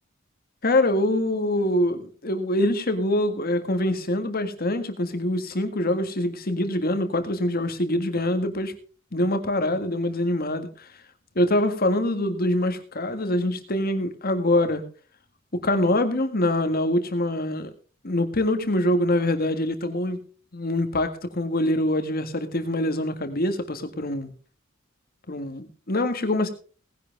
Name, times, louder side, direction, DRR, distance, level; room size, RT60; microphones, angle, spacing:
voice 1, 0.6-8.7 9.1-10.9 11.4-14.8 15.5-17.7 18.0-20.2 20.5-24.3 25.3-26.5, left 1 dB, 50° left, 8 dB, 1.8 m, -24 dB
18.5 x 10.5 x 3.5 m, 0.38 s
head